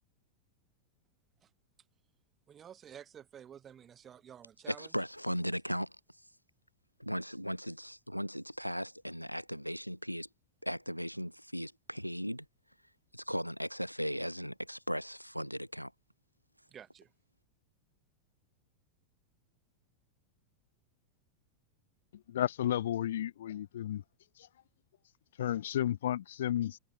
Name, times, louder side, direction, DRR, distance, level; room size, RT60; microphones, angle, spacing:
voice 1, 2.5-4.9 16.7-17.1, right 9 dB, 25° right, 4.3 m, -51 dB
voice 2, 4.7-5.9 7.0-10.3 10.6-12.4 13.1-15.9, equal, 90° left, 0.6 m, -37 dB
voice 3, 22.3-24.0 25.4-26.8, left 11 dB, 60° left, 1.0 m, -32 dB
figure-of-eight pair, 90°, 0 cm